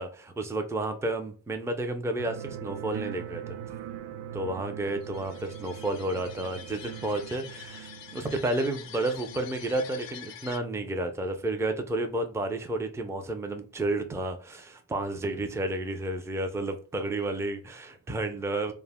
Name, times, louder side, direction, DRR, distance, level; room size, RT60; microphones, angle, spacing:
voice 1, 0.0-3.6 4.3-18.7, right 2 dB, 5° right, 0.4 m, -31 dB
sound 1, 2.2-10.3, right 9 dB, 65° right, 0.5 m, -42 dB
sound 2, 5.0-10.6, left 8 dB, 75° left, 0.5 m, -46 dB
2.2 x 2.0 x 3.4 m
cardioid pair, 70°, 45 cm